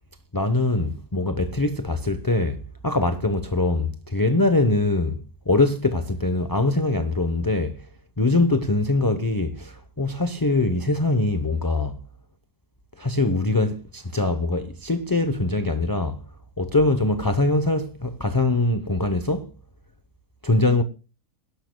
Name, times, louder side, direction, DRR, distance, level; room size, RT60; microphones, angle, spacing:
voice 1, 0.3-7.8 8.2-12.0 13.0-16.2 16.6-19.5 20.4-20.8, left 2 dB, 20° left, 0.6 m, -23 dB
23.0 x 11.5 x 2.2 m
omnidirectional pair, 1.7 m